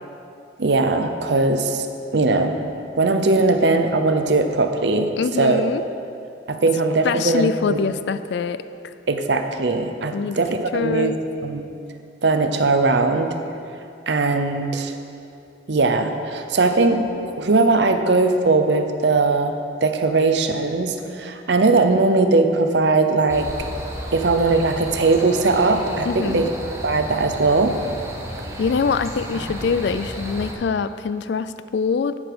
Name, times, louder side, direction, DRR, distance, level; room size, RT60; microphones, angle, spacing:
voice 1, 0.6-2.6 3.0-5.1 5.4-5.6 6.5-7.8 9.1-11.2 11.4-11.7 12.2-13.3 14.1-14.9 15.7-19.5 19.8-23.5 24.1-26.5 26.8-27.7, right 3 dB, 65° right, 7 dB, 0.7 m, -19 dB
voice 2, 5.2-5.8 7.0-8.9 10.1-10.4 10.7-11.2 26.0-26.5 28.6-32.2, left 5 dB, 65° left, 13 dB, 0.3 m, -24 dB
sound 1, 23.3-30.5, equal, 15° right, 0.9 m, -33 dB
11.0 x 4.9 x 6.7 m, 2.6 s
head